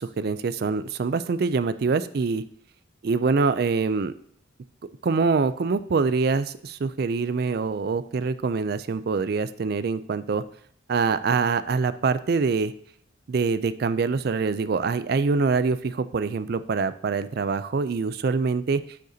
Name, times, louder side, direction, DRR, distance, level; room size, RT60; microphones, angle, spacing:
voice 1, 0.0-2.4 3.0-4.1 5.0-10.4 10.9-12.7 13.3-18.8, right 4 dB, 55° right, 13 dB, 0.4 m, -24 dB
11.5 x 6.6 x 2.8 m, 0.65 s
head